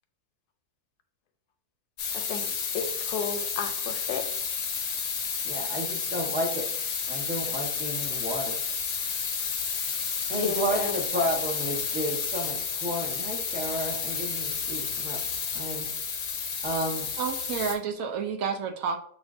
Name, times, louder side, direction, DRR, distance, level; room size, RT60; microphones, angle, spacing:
sound 1, 2.0-17.7, left 6 dB, 60° left, 0.8 m, -31 dB
voice 1, 2.1-4.3 10.3-11.0, left 6 dB, 80° left, 6 dB, 1.1 m, -33 dB
voice 2, 5.4-6.6 7.1-8.5 10.3-15.2 15.5-15.9 16.6-17.1, equal, 10° right, -2 dB, 0.7 m, -32 dB
voice 3, 17.2-19.0, right 6 dB, 70° right, 3 dB, 0.9 m, -30 dB
7.0 x 2.4 x 2.5 m, 0.64 s
omnidirectional pair, 1.7 m